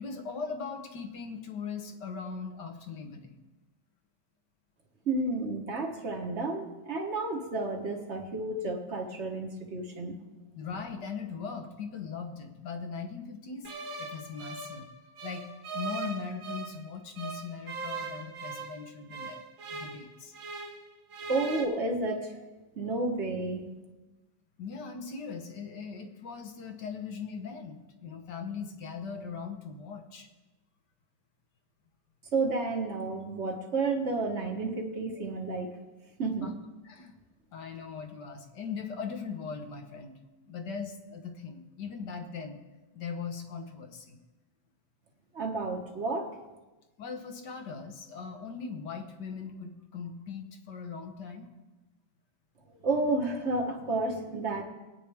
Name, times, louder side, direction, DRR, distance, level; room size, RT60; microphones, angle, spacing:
voice 1, 0.0-3.4 10.5-13.7 14.0-14.9 15.2-15.5 15.7-19.4 19.7-20.3 24.6-30.3 36.4-36.5 36.8-37.1 37.5-40.2 40.5-42.6 42.9-44.2 47.0-51.5, left 5 dB, 60° left, 5 dB, 1.7 m, -39 dB
voice 2, 5.0-10.2 21.3-22.4 22.7-23.7 32.3-35.7 36.2-36.5 45.3-46.4 52.8-54.6, right 3 dB, 40° right, 3 dB, 1.4 m, -31 dB
sound 1, 13.6-16.8 17.2-20.8 21.1-21.6, right 4 dB, 85° right, 2.3 m, -40 dB
20.0 x 9.2 x 3.5 m, 1.1 s
omnidirectional pair, 2.2 m